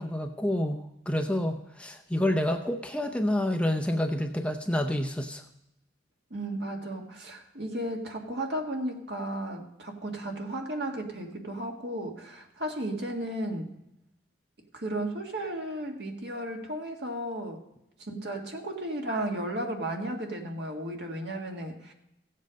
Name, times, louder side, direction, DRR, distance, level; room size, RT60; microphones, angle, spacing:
voice 1, 0.0-5.4, left 1 dB, 5° left, 5 dB, 0.6 m, -28 dB
voice 2, 6.3-13.8 14.7-17.6 18.0-21.9, right 1 dB, 60° right, 2 dB, 1.8 m, -34 dB
15.5 x 7.5 x 5.2 m, 0.87 s
head